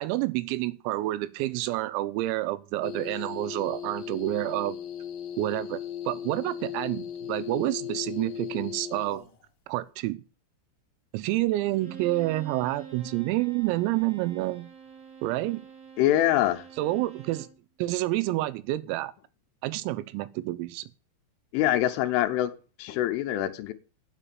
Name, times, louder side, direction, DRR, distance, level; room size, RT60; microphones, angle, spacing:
voice 1, 0.0-4.8 5.4-9.2 9.7-10.2 11.1-14.7 15.2-15.6 16.8-17.5 17.8-19.1 19.6-20.9, right 17 dB, 90° right, 3.5 m, -29 dB
sound 1, 2.8-9.3, left 11 dB, 60° left, 2.5 m, -37 dB
Bowed string instrument, 11.7-17.6, right 6 dB, 30° right, 2.3 m, -47 dB
voice 2, 16.0-16.6 21.5-22.5 22.8-23.7, left 13 dB, 80° left, 3.2 m, -24 dB
9.9 x 6.8 x 7.5 m
omnidirectional pair, 6.0 m